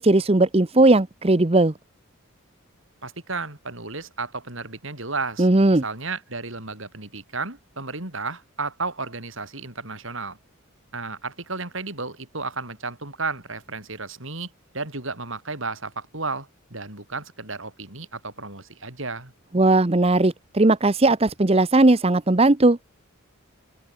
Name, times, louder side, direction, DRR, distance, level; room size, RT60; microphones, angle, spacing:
voice 1, 0.0-1.7 5.4-5.8 19.5-22.8, right 2 dB, 25° right, 0.8 m, -18 dB
voice 2, 3.0-10.4 10.9-19.3, right 3 dB, 60° right, 4.6 m, -33 dB
open air
head